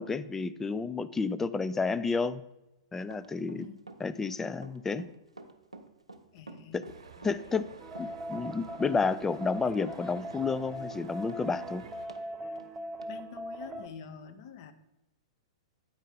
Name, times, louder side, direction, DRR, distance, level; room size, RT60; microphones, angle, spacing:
voice 1, 0.0-2.4 2.9-3.7 4.0-5.1 6.7-6.8 7.2-7.7 8.0-11.8, left 4 dB, 10° left, 14 dB, 0.3 m, -31 dB
Run, 3.0-12.3 12.6-12.7 13.0-13.1, right 3 dB, 90° right, 0.7 m, -49 dB
voice 2, 6.3-6.8 7.2-7.3 13.1-14.7, left 7 dB, 45° left, 9 dB, 0.7 m, -46 dB
sound 1, 6.8-12.1, right 5 dB, 65° right, 1.0 m, -51 dB
sound 2, 7.8-13.9, equal, 15° right, 0.7 m, -40 dB
8.9 x 4.6 x 5.2 m, 0.95 s
figure-of-eight pair, 105°, 3 cm